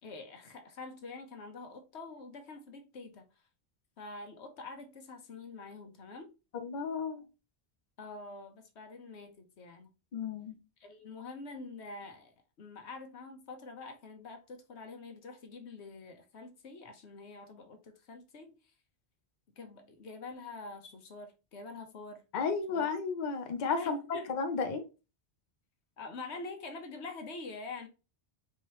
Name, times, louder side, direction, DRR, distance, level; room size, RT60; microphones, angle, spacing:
voice 1, 0.0-3.3 4.0-6.3 8.0-9.9 10.8-18.5 19.6-22.2 22.7-22.9 23.8-24.4 26.0-27.9, left 3 dB, 75° left, 1.2 m, -46 dB
voice 2, 6.5-7.2 10.1-10.6 22.3-24.0 24.3-24.9, left 5 dB, 50° left, 0.7 m, -33 dB
4.5 x 2.9 x 3.1 m
omnidirectional pair, 1.1 m